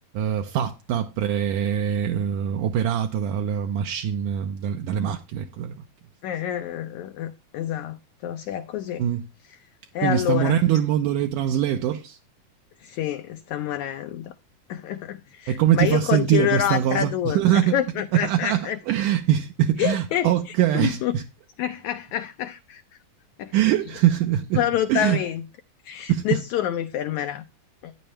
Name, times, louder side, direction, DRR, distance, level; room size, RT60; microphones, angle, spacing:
voice 1, 0.1-5.8 9.0-9.3 10.0-12.2 15.5-17.8 18.1-21.2 23.5-24.6 24.9-25.2 26.1-26.4, right 10 dB, 75° right, 2.2 m, -23 dB
voice 2, 6.2-8.0 8.2-9.0 9.9-10.6 12.8-14.3 14.7-18.8 19.8-21.2 21.6-22.8 23.4-23.5 24.6-25.4 25.9-27.4 27.8-27.9, left 11 dB, 80° left, 1.7 m, -27 dB
12.5 x 9.9 x 3.2 m
omnidirectional pair, 4.1 m